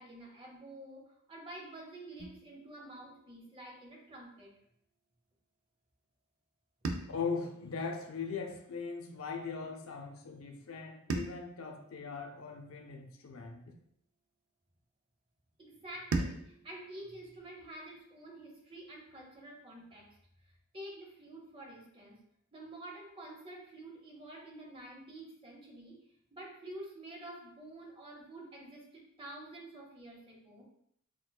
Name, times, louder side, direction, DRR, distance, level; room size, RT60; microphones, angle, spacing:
voice 1, 0.0-4.5 15.6-20.1 20.7-22.2 22.5-26.0 26.3-30.7, right 1 dB, 25° right, 0.8 m, -49 dB
sound 1, 2.2-4.4 6.8-9.2 11.1-13.6 16.1-18.6, right 3 dB, 85° right, 0.5 m, -42 dB
voice 2, 7.1-13.7, left 5 dB, 85° left, 0.5 m, -40 dB
6.0 x 2.2 x 2.3 m
head